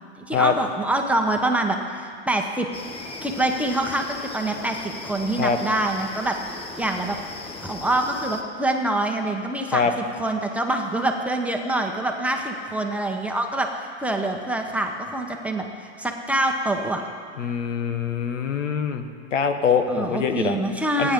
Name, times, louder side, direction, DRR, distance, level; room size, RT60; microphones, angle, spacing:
voice 1, 0.3-2.7 3.2-6.4 6.8-7.2 7.6-17.0 19.9-21.1, right 1 dB, 5° right, 2 dB, 0.9 m, -25 dB
sound 1, 2.7-8.4, left 3 dB, 15° left, 1.1 m, -38 dB
voice 2, 17.4-19.0 19.3-20.6 21.0-21.1, left 6 dB, 85° left, 7 dB, 1.5 m, -23 dB
28.5 x 10.0 x 3.7 m, 2.2 s
hypercardioid pair, 130°, 36 cm